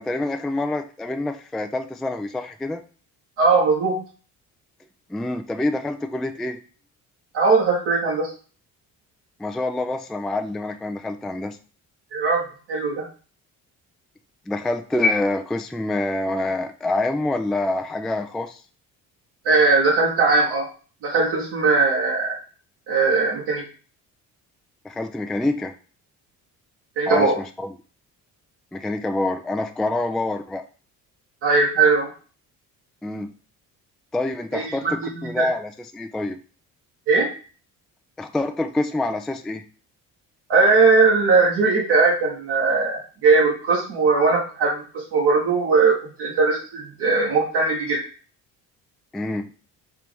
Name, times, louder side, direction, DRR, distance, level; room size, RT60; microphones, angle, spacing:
voice 1, 0.0-2.8 5.1-6.6 9.4-11.6 14.5-18.6 24.8-25.7 27.1-27.7 28.7-30.6 33.0-33.3 34.1-36.4 38.2-39.6 49.1-49.5, left 2 dB, ahead, 7 dB, 0.3 m, -26 dB
voice 2, 3.4-4.0 7.3-8.3 12.1-12.4 12.7-13.0 19.4-20.7 21.0-22.4 22.9-23.6 27.0-27.3 31.4-32.1 34.5-35.5 37.1-37.3 40.5-48.0, right 4 dB, 70° right, -3 dB, 1.4 m, -19 dB
4.6 x 2.8 x 3.4 m, 0.38 s
hypercardioid pair, 55°, 43 cm